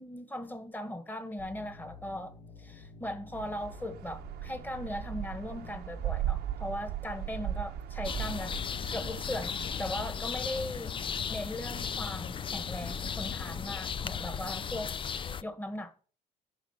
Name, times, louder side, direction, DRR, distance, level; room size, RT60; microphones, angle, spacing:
voice 1, 0.0-8.6 8.9-16.1, left 1 dB, 10° left, 1.6 m, -39 dB
sound 1, 1.4-14.9, left 4 dB, 70° left, 3.4 m, -51 dB
sound 2, 3.3-10.1, right 11 dB, 75° right, 1.0 m, -38 dB
sound 3, 8.0-15.4, left 7 dB, 30° left, 0.5 m, -36 dB
11.5 x 4.3 x 7.1 m
cardioid pair, 110°, 17 cm